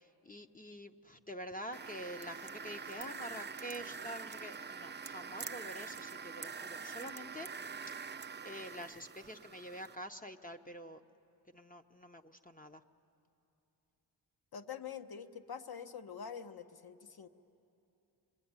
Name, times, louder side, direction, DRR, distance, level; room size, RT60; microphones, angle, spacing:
voice 1, 0.0-7.5 7.9-8.0 8.4-11.0 11.5-12.8, equal, 20° left, 7 dB, 0.8 m, -47 dB
sound 1, 1.7-10.0, right 5 dB, 25° right, 0.6 m, -45 dB
voice 2, 14.5-17.3, left 7 dB, 55° left, 9 dB, 1.2 m, -45 dB
27.5 x 22.0 x 9.6 m, 2.9 s
cardioid pair, 95°, 44 cm